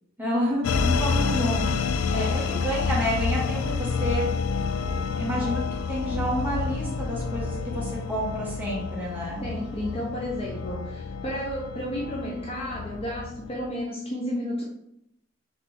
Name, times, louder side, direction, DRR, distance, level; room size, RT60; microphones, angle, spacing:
voice 1, 0.2-4.4 5.2-5.6 5.9-9.4, equal, 10° right, -5 dB, 1.3 m, -29 dB
sound 1, 0.6-13.7, left 5 dB, 85° left, 0.3 m, -29 dB
voice 2, 2.1-2.6 4.8-5.0 9.3-14.6, equal, 30° left, -2 dB, 0.5 m, -32 dB
4.2 x 3.2 x 3.5 m, 0.79 s
head